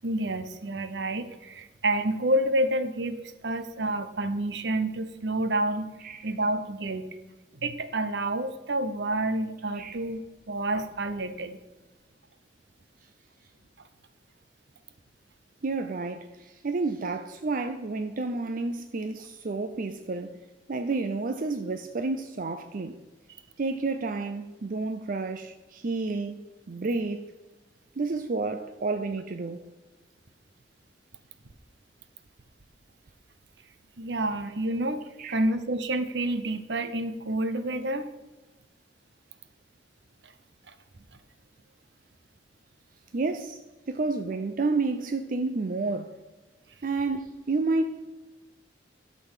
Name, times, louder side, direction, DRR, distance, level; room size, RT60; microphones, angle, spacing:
voice 1, 0.0-5.9 6.2-7.1 7.6-10.2 10.5-11.6 34.0-35.0 35.3-38.1 40.2-40.3, right 1 dB, 70° right, 0.8 m, -29 dB
voice 2, 15.6-20.4 20.7-23.0 23.6-27.3 28.0-29.6 35.2-35.4 43.1-43.6 43.9-46.2 46.8-48.1, right 3 dB, 50° right, 0.5 m, -30 dB
12.0 x 4.2 x 7.3 m
head